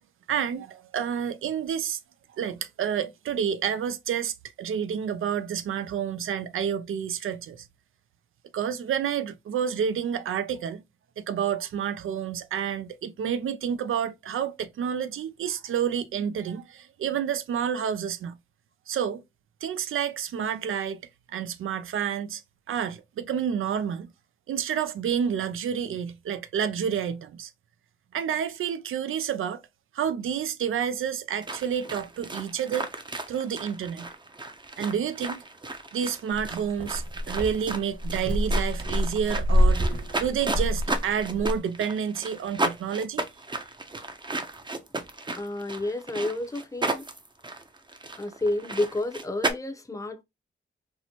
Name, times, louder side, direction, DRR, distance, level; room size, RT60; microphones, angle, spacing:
voice 1, 0.3-2.0 2.4-7.6 8.5-10.8 11.2-18.4 18.9-19.2 19.6-21.0 21.3-22.4 22.7-24.1 24.5-27.5 28.1-29.6 29.9-32.9 33.3-34.1 34.8-35.4 35.9-39.8 40.2-43.2, right 8 dB, 85° right, 0.4 m, -29 dB
sound 1, 31.4-49.5, right 2 dB, 20° right, 0.6 m, -34 dB
sound 2, 36.3-41.6, equal, 45° right, 1.5 m, -26 dB
voice 2, 45.4-47.1 48.2-50.2, left 2 dB, 15° left, 0.6 m, -30 dB
4.3 x 2.1 x 2.8 m
wide cardioid pair, 90°, 20 cm